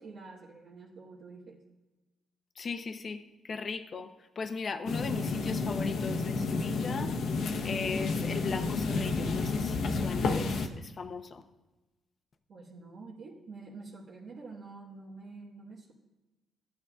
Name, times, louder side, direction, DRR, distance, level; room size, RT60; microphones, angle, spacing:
voice 1, 0.0-1.6 12.5-15.9, right 3 dB, 65° right, -6 dB, 1.5 m, -47 dB
voice 2, 2.6-4.1 4.4-7.1 7.6-11.4, left 4 dB, 45° left, 8 dB, 0.7 m, -38 dB
sound 1, 4.9-10.7, left 3 dB, 70° left, 0.9 m, -31 dB
14.0 x 9.2 x 2.4 m, 1.1 s
cardioid pair, 90°, 0 cm